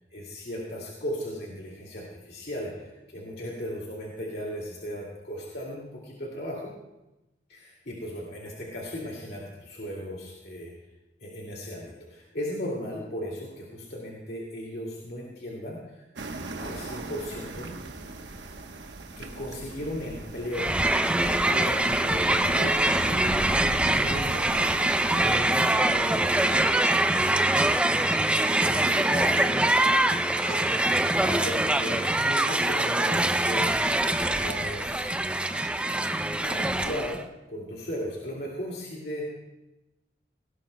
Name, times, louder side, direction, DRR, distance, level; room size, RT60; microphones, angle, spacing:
voice 1, 0.1-6.7 7.5-10.7 11.2-16.0 16.6-17.7 19.2-20.7 21.2-23.3 23.9-24.9 25.2-27.0 28.7-29.6 30.5-33.8 34.3-35.1 36.4-39.3, equal, 65° left, -3 dB, 2.3 m, -36 dB
sound 1, 16.2-25.4, right 2 dB, 90° right, 1.1 m, -39 dB
Crowd, 20.5-37.2, right 1 dB, 5° right, 0.4 m, -24 dB
sound 2, 25.8-26.9 27.2-27.3 27.5-30.9 31.2-31.3 31.6-31.7 33.6-37.4, right 2 dB, 50° right, 4.0 m, -49 dB
18.0 x 17.5 x 2.2 m, 0.98 s
head